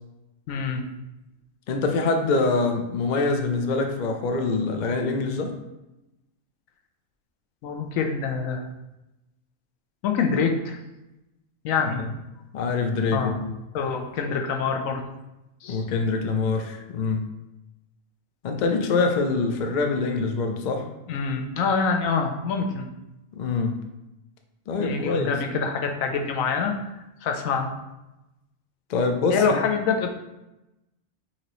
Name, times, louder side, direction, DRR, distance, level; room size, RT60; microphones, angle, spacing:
voice 1, 0.5-0.9 7.6-8.6 10.0-10.8 11.6-12.1 13.1-13.3 13.7-15.0 15.6-15.9 21.1-22.9 24.8-26.8 27.2-27.7 29.3-30.1, left 5 dB, 80° left, 4 dB, 1.0 m, -25 dB
voice 2, 1.7-5.5 11.8-12.1 12.5-13.5 15.7-17.3 18.4-20.9 23.4-23.8 24.7-25.4 28.9-29.6, left 3 dB, 60° left, 4 dB, 0.4 m, -25 dB
5.7 x 2.9 x 3.0 m, 0.95 s
omnidirectional pair, 1.4 m